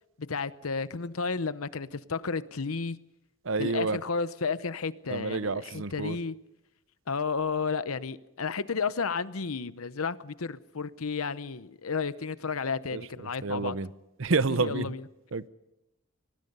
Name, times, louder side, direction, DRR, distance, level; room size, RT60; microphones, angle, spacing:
voice 1, 0.2-3.0 3.6-6.3 7.1-13.8 14.6-15.0, left 5 dB, 90° left, 0.9 m, -32 dB
voice 2, 3.4-4.0 5.1-6.2 12.9-13.9 14.2-14.9 15.3-15.5, right 3 dB, 65° right, 0.7 m, -29 dB
25.0 x 20.5 x 5.5 m
head